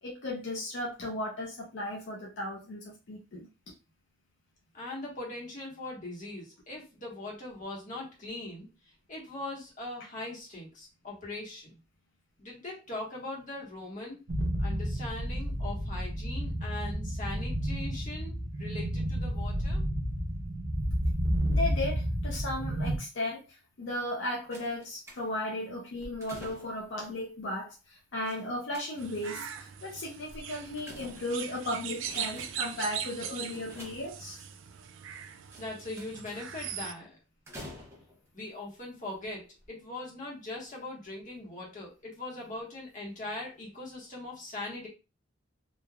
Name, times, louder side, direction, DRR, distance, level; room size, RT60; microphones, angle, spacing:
voice 1, 0.0-3.5 21.5-34.4, left 1 dB, 65° left, -1 dB, 0.5 m, -36 dB
voice 2, 4.7-8.7 9.1-11.8 12.4-14.2 14.6-19.8 35.6-37.2 38.3-44.9, left 2 dB, 40° left, -2 dB, 1.1 m, -40 dB
sound 1, 14.3-23.0, equal, 70° right, 0.8 m, -31 dB
sound 2, 24.5-25.5 26.0-26.9 28.3-29.3 30.3-31.6 32.0-32.8 33.5-34.5 35.5-36.3 37.5-38.3 39.1-39.2 39.6-39.7, equal, 15° right, 0.7 m, -49 dB
sound 3, 29.0-36.9, right 8 dB, 90° right, 0.4 m, -40 dB
3.2 x 2.3 x 2.2 m, 0.30 s
head